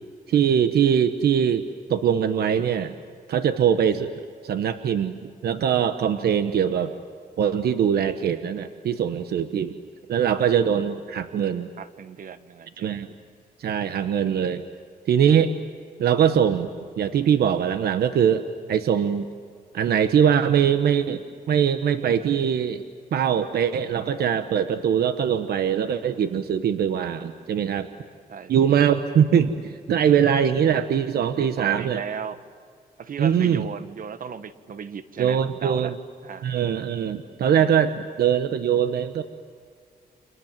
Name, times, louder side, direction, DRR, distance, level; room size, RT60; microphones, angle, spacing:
voice 1, 0.3-2.9 3.3-4.1 4.4-6.9 7.4-9.8 10.1-11.7 12.8-13.1 13.6-14.6 15.1-15.5 16.0-16.7 17.0-18.4 18.7-19.3 19.7-21.2 21.5-22.8 23.1-27.9 28.5-32.0 33.2-33.7 35.2-35.9 36.4-39.2, right 8 dB, 85° right, 9 dB, 1.1 m, -22 dB
voice 2, 11.8-13.0 28.3-28.7 31.4-32.4 33.0-35.9 36.2-36.5, right 7 dB, 60° right, 12 dB, 1.4 m, -36 dB
30.0 x 26.0 x 7.5 m, 2.1 s
cardioid pair, 110°, 16 cm